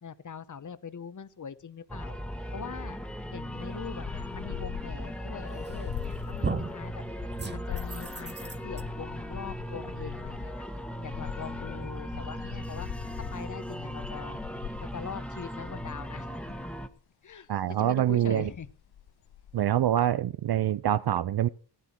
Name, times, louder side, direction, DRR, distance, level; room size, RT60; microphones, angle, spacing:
voice 1, 0.0-2.2 2.5-3.0 3.3-7.0 7.5-10.7 11.0-12.9 13.3-14.4 14.8-16.4 17.2-18.7, left 6 dB, 45° left, 0.9 m, -42 dB
sound 1, 1.9-16.9, equal, 5° left, 1.3 m, -38 dB
sound 2, 3.5-17.0 17.5-17.7 17.9-19.6, left 10 dB, 65° left, 0.6 m, -42 dB
sound 3, 5.6-6.0 6.4-6.8 7.4-8.8, right 4 dB, 25° right, 1.1 m, -35 dB
voice 2, 17.5-18.5 19.5-21.5, right 11 dB, 65° right, 0.5 m, -25 dB
15.5 x 9.2 x 4.4 m
cardioid pair, 60°, 42 cm